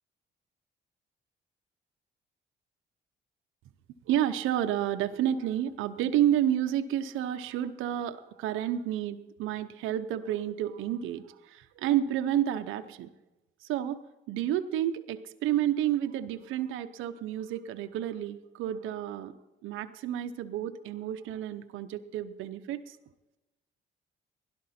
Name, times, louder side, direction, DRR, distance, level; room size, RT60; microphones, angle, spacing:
voice 1, 4.1-13.1 13.6-14.0 14.3-19.3 19.6-23.0, right 11 dB, 90° right, 9 dB, 0.7 m, -30 dB
16.5 x 11.5 x 4.3 m, 1.0 s
cardioid pair, 90°, 20 cm